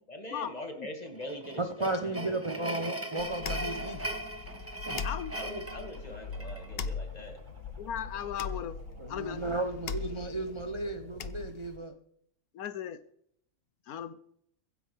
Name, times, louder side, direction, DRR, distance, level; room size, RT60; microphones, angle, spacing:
voice 1, 0.1-2.8 5.3-7.4, left 1 dB, 25° left, 3 dB, 2.3 m, -42 dB
sound 1, 1.2-6.7, right 1 dB, 10° right, 1.1 m, -39 dB
voice 2, 1.6-4.1 4.9-5.0 9.0-11.9, right 2 dB, 25° right, 6 dB, 0.6 m, -34 dB
sound 2, 3.2-11.8, left 5 dB, 50° left, 0.8 m, -40 dB
sound 3, 3.3-11.3, right 2 dB, 60° right, 2.4 m, -58 dB
voice 3, 5.0-5.5 7.8-8.8 9.1-9.4 12.5-13.0 13.9-14.1, left 9 dB, 80° left, 13 dB, 1.2 m, -36 dB
23.5 x 10.0 x 3.4 m, 0.71 s
omnidirectional pair, 1.5 m